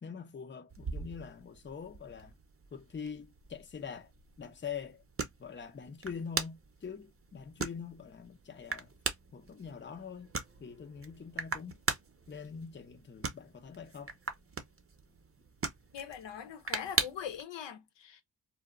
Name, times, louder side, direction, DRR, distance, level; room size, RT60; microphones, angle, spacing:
voice 1, 0.0-2.3 2.7-4.1 4.4-5.0 5.4-8.9 9.3-10.3 10.6-11.8 12.3-14.2, left 6 dB, 25° left, 0.6 m, -44 dB
sound 1, 0.7-17.4, right 4 dB, 30° right, 0.7 m, -41 dB
voice 2, 15.9-18.2, left 8 dB, 75° left, 0.7 m, -42 dB
2.1 x 2.0 x 3.5 m
supercardioid pair, 45°, 44 cm